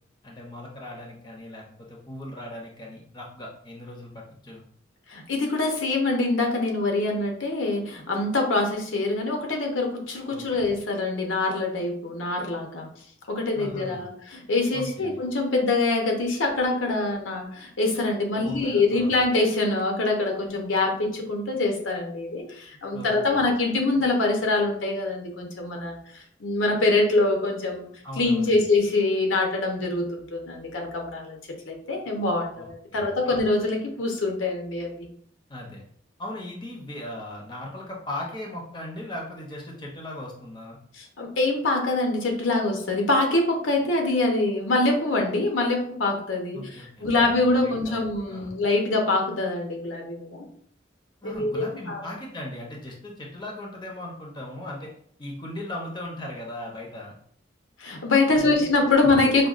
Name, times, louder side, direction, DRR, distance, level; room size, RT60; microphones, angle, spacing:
voice 1, 0.2-4.6 10.3-10.6 13.5-14.1 14.7-15.2 18.4-19.2 22.9-23.4 28.0-28.6 32.5-33.1 35.5-35.8 36.2-40.8 46.5-48.6 51.2-54.9 55.2-57.2 58.4-59.1, left 1 dB, 25° left, -1 dB, 0.6 m, -38 dB
voice 2, 5.1-12.9 13.3-27.9 28.2-31.4 31.6-35.1 41.0-50.5 51.2-52.0 57.8-59.5, left 2 dB, 85° left, 2 dB, 0.7 m, -24 dB
5.0 x 2.2 x 2.4 m, 0.62 s
head